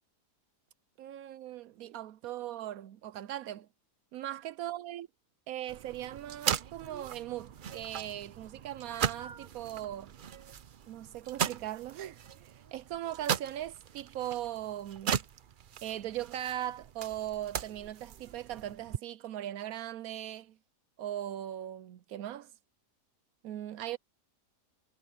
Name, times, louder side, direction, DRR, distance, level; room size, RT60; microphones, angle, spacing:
voice 1, 1.0-3.7 4.1-5.1 5.5-10.1 10.9-15.2 15.8-20.6 21.0-22.5 23.4-24.0, right 12 dB, 70° right, 0.9 m, -39 dB
sound 1, 5.7-19.0, right 8 dB, 85° right, 0.4 m, -38 dB
omnidirectional pair, 1.7 m